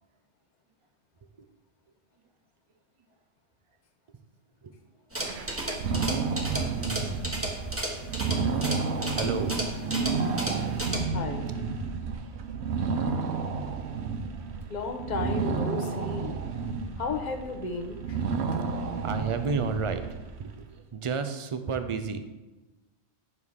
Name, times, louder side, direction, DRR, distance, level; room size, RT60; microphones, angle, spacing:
sound 1, 5.1-11.0, right 1 dB, 10° right, 1.1 m, -34 dB
sound 2, 5.2-20.6, right 5 dB, 75° right, 1.0 m, -31 dB
voice 1, 9.1-10.4 10.9-11.4 12.5-12.7 13.4-13.7 14.1-14.6 16.3-16.4 18.7-20.1 20.4-22.2, right 5 dB, 40° right, 9 dB, 0.5 m, -33 dB
voice 2, 11.1-11.5 14.7-16.3 17.0-18.0, left 3 dB, 45° left, 5 dB, 0.9 m, -33 dB
9.6 x 6.2 x 3.6 m, 1.1 s
omnidirectional pair, 1.2 m